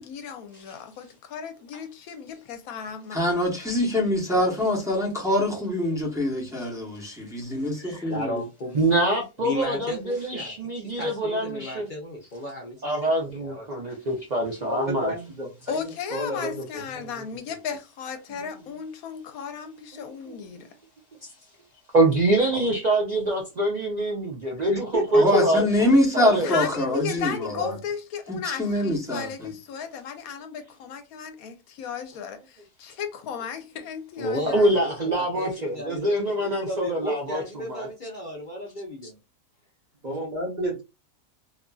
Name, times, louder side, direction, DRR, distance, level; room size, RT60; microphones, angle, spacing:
voice 1, 0.0-3.2 15.7-20.7 26.4-34.9, left 7 dB, 80° left, 1.0 m, -35 dB
voice 2, 3.1-8.4 25.1-27.5 28.3-29.5, left 1 dB, 5° right, 0.7 m, -24 dB
voice 3, 4.3-4.7 7.5-8.8 9.4-13.7 22.6-22.7 34.2-39.2, left 1 dB, 50° left, 0.6 m, -35 dB
voice 4, 8.7-11.9 12.8-15.1 17.0-17.1 19.9-20.4 21.2-21.3 21.9-26.5 34.5-37.4 37.7-37.9, right 1 dB, 80° right, 0.3 m, -25 dB
voice 5, 14.6-16.8 24.9-25.7 27.5-27.8 40.0-40.8, equal, 40° right, 0.8 m, -32 dB
2.9 x 2.5 x 2.2 m
omnidirectional pair, 1.5 m